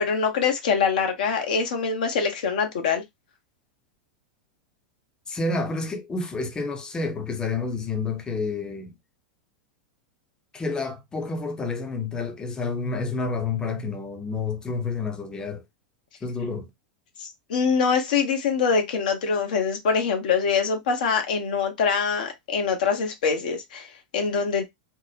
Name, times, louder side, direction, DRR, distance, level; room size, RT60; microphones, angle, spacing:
voice 1, 0.0-3.0 17.2-24.7, left 5 dB, 75° left, 0.8 m, -24 dB
voice 2, 5.3-8.9 10.5-15.6 16.2-16.7, left 3 dB, 20° left, 0.6 m, -29 dB
2.7 x 2.0 x 2.4 m
hypercardioid pair, 105°, 5 cm